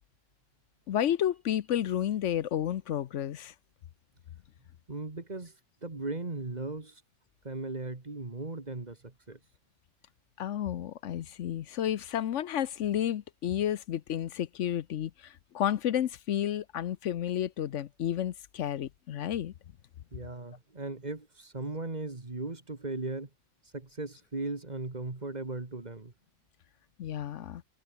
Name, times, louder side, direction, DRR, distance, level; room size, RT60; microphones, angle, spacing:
voice 1, 0.9-3.5 10.4-19.5 27.0-27.6, left 10 dB, 75° left, 1.0 m, -31 dB
voice 2, 4.9-5.5 5.8-7.0 7.4-9.4 20.1-23.3 23.7-26.1, right 3 dB, 35° right, 2.1 m, -37 dB
omnidirectional pair, 1.3 m